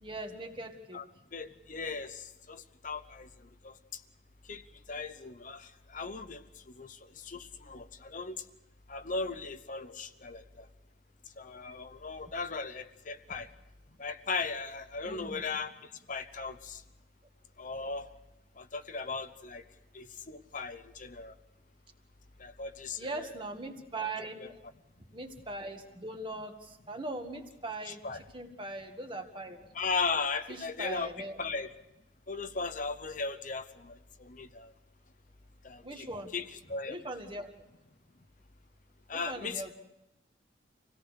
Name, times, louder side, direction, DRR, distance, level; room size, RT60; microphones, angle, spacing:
voice 1, 0.0-1.0 15.0-15.4 23.0-24.4 25.1-29.7 30.5-31.4 35.8-36.3 36.9-37.5 39.1-39.7, right 2 dB, 25° right, 4 dB, 2.0 m, -40 dB
voice 2, 1.3-3.3 3.6-4.0 4.5-4.6 4.9-8.4 8.9-10.7 11.4-13.5 14.0-16.8 17.6-18.1 18.6-19.6 19.9-21.3 22.4-23.4 27.9-28.2 29.7-31.1 31.4-31.7 32.3-34.7 35.6-36.1 36.3-37.0 39.1-39.7, left 4 dB, 45° left, 9 dB, 0.9 m, -37 dB
26.0 x 17.5 x 6.5 m, 0.96 s
head